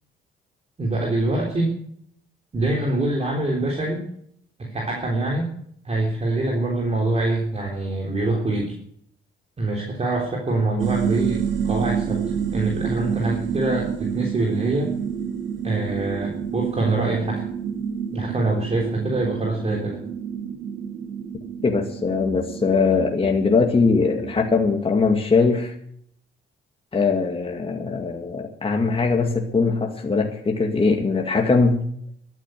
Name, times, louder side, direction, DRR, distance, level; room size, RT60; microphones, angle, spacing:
voice 1, 0.8-1.7 2.5-4.0 4.6-5.5 5.8-8.8 9.6-12.2 12.5-14.9 15.6-17.5 18.1-20.0, right 2 dB, 35° right, -1 dB, 3.5 m, -24 dB
sound 1, 10.8-24.5, right 7 dB, 80° right, 2.3 m, -29 dB
voice 2, 21.6-25.7 26.9-31.8, left 4 dB, 30° left, 2 dB, 2.1 m, -21 dB
13.0 x 9.4 x 9.2 m, 0.67 s
cardioid pair, 90°, 20 cm